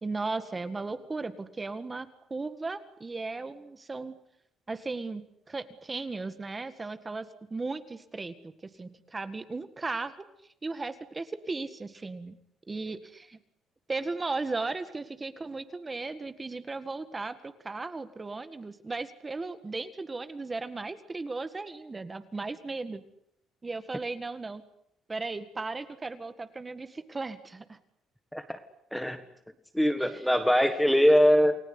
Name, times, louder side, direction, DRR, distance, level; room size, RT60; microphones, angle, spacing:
voice 1, 0.0-4.1 4.7-8.4 8.8-10.2 10.6-12.4 12.7-13.4 13.9-23.0 23.6-24.6 25.1-27.8 30.0-30.3, right 3 dB, 15° right, 11 dB, 1.8 m, -36 dB
voice 2, 29.7-31.6, equal, ahead, 10 dB, 1.6 m, -22 dB
29.5 x 20.5 x 9.7 m, 0.74 s
cardioid pair, 160°, 0 cm